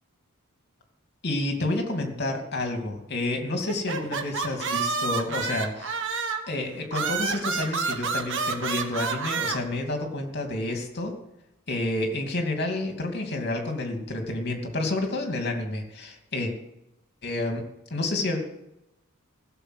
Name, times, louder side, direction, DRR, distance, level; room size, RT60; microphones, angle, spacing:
voice 1, 1.2-6.0 6.5-11.1 11.7-16.5 17.2-17.6 17.9-18.4, left 2 dB, 50° left, 3 dB, 2.6 m, -29 dB
sound 1, 3.7-6.5 6.9-9.6, right 5 dB, 60° right, 1.4 m, -29 dB
15.5 x 7.1 x 8.0 m, 0.86 s
head